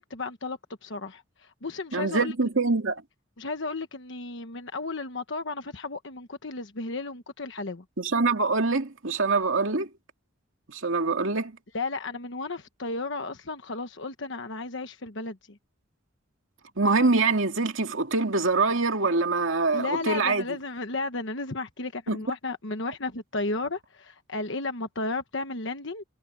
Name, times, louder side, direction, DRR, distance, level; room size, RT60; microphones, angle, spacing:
voice 1, 0.0-2.3 3.4-7.8 11.7-15.6 19.7-26.0, left 3 dB, 60° left, 1.2 m, -34 dB
voice 2, 1.9-3.0 8.0-9.9 10.7-11.6 16.8-20.5 22.1-22.2, right 3 dB, 75° right, 2.4 m, -24 dB
head